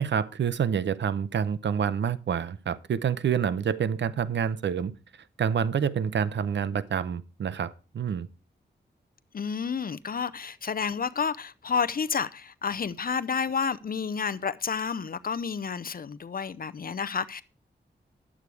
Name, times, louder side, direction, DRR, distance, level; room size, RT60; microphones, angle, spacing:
voice 1, 0.0-4.9 5.4-8.3, right 7 dB, 75° right, 0.7 m, -27 dB
voice 2, 9.3-17.4, left 6 dB, 50° left, 0.6 m, -30 dB
11.0 x 8.3 x 4.7 m
cardioid pair, 65°, 19 cm